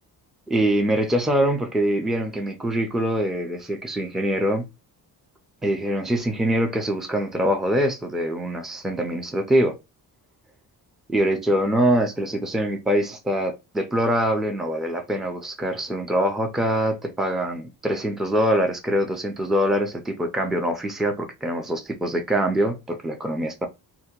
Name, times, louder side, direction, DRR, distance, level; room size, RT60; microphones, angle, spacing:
voice 1, 0.5-4.6 5.6-9.8 11.1-23.7, equal, ahead, 0.3 m, -24 dB
2.8 x 2.2 x 3.5 m
cardioid pair, 170°, 40 cm